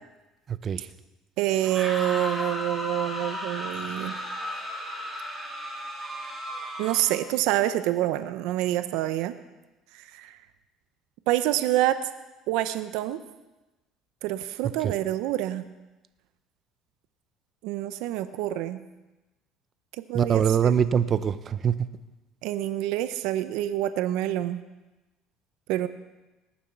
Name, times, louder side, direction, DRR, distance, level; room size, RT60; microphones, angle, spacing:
voice 1, 0.5-0.9 14.8-15.0 20.1-21.8, right 8 dB, 40° right, 13 dB, 0.6 m, -23 dB
voice 2, 1.4-4.2 6.8-9.3 9.9-10.4 11.3-12.0 12.5-13.2 14.2-15.7 17.6-18.8 20.1-20.4 22.4-24.6 25.7-25.9, right 14 dB, 80° right, 11 dB, 0.6 m, -27 dB
sound 1, 1.5-7.3, equal, 10° right, 4.1 m, -34 dB
19.5 x 7.2 x 5.8 m, 1.1 s
cardioid pair, 115°, 0 cm